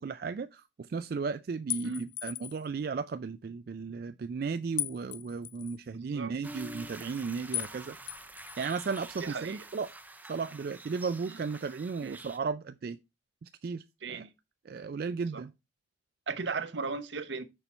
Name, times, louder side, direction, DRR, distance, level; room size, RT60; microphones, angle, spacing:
voice 1, 0.0-8.0 8.6-9.9 10.3-13.0 13.4-13.8 14.1-14.2 14.7-15.5, right 5 dB, 55° right, 0.3 m, -35 dB
sound 1, 1.7-2.7 4.8-5.8 7.5-7.8 8.1-9.0, left 20 dB, 75° left, 0.3 m, -37 dB
voice 2, 5.9-6.3 9.2-9.6 12.0-12.2 14.0-14.3 15.3-15.4 16.3-17.5, right 4 dB, 80° right, 0.8 m, -36 dB
sound 2, 6.4-12.4, right 1 dB, 10° right, 0.6 m, -47 dB
6.9 x 5.7 x 4.2 m
head